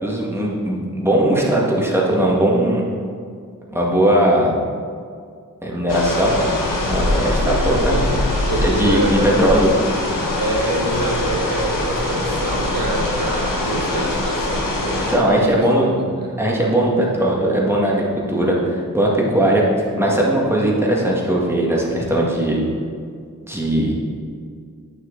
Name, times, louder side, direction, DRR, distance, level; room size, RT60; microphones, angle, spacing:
voice 1, 0.0-2.8 3.7-4.5 5.6-6.5 6.8-8.1 8.6-9.7 15.0-15.9 16.4-19.6 20.0-22.6 23.5-24.0, right 1 dB, 5° right, -3 dB, 1.9 m, -19 dB
sound 1, 5.9-15.2, left 2 dB, 70° left, 1.3 m, -23 dB
voice 2, 8.4-9.3 10.4-16.4, right 2 dB, 85° right, -1 dB, 1.5 m, -26 dB
9.0 x 6.5 x 4.0 m, 2.2 s
cardioid pair, 65°, 34 cm